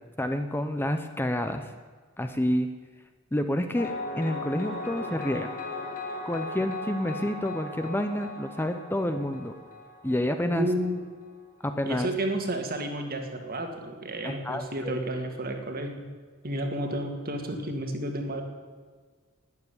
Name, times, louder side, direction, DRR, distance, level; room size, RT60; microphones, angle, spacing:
voice 1, 0.2-1.7 2.2-2.7 3.3-5.5 6.3-9.5 10.0-10.7 11.6-12.1 14.2-15.0, left 1 dB, 10° left, 7 dB, 0.7 m, -29 dB
sound 1, 3.8-11.3, left 2 dB, 45° left, 1.8 m, -38 dB
voice 2, 10.4-11.0 11.9-16.0 16.4-18.4, right 1 dB, 45° right, 4 dB, 2.0 m, -31 dB
12.0 x 9.5 x 9.8 m, 1.5 s
head